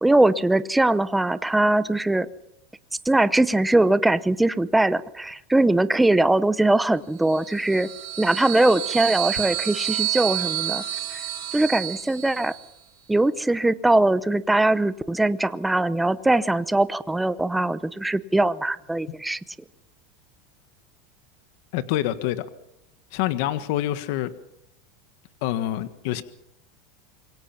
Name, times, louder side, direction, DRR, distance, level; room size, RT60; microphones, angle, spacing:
voice 1, 0.0-2.3 3.0-7.9 8.2-10.8 11.1-11.2 11.5-12.5 13.1-19.4, right 2 dB, 5° right, 0.8 m, -21 dB
sound 1, 7.2-12.7, right 14 dB, 60° right, 7.6 m, -30 dB
voice 2, 21.7-22.4 23.1-24.3 25.4-26.2, left 13 dB, 60° left, 1.4 m, -26 dB
26.5 x 23.5 x 5.9 m
supercardioid pair, 155°, 0 cm